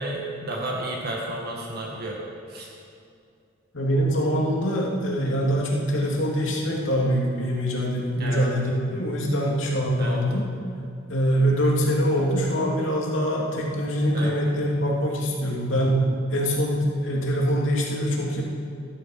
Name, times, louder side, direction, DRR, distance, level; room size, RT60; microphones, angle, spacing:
voice 1, 0.0-2.2 2.5-2.7 8.2-8.5 10.0-10.2 14.1-14.3 16.3-16.5, right 1 dB, 50° right, -2 dB, 2.0 m, -32 dB
voice 2, 3.7-10.5 11.1-16.0 16.3-18.4, equal, 65° left, -2 dB, 3.0 m, -24 dB
15.5 x 12.5 x 5.8 m, 2.4 s
head